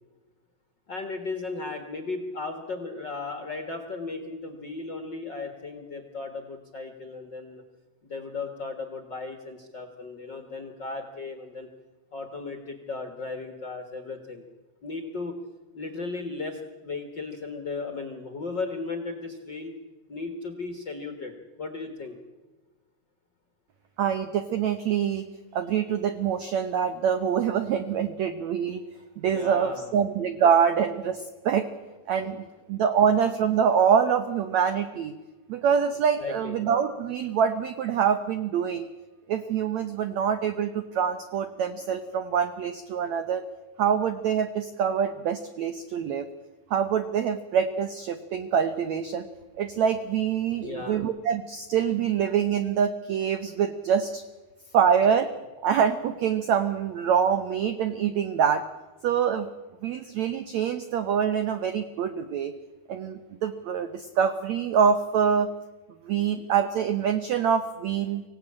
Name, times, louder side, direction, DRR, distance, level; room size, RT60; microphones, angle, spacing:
voice 1, 0.9-7.6 8.1-11.7 12.1-14.4 14.8-15.4 15.7-19.7 20.1-21.3 21.6-22.2 29.3-29.9 36.2-36.6 50.6-51.1, left 3 dB, 50° left, 5 dB, 1.3 m, -36 dB
voice 2, 24.0-28.8 29.2-31.7 32.1-35.2 35.5-38.9 39.3-43.4 43.8-46.3 46.7-49.3 49.6-54.2 54.7-55.3 55.6-58.6 59.0-59.5 59.8-62.5 62.9-65.5 66.0-68.2, right 7 dB, 90° right, 9 dB, 1.5 m, -25 dB
25.5 x 17.0 x 8.7 m, 1.2 s
omnidirectional pair, 4.6 m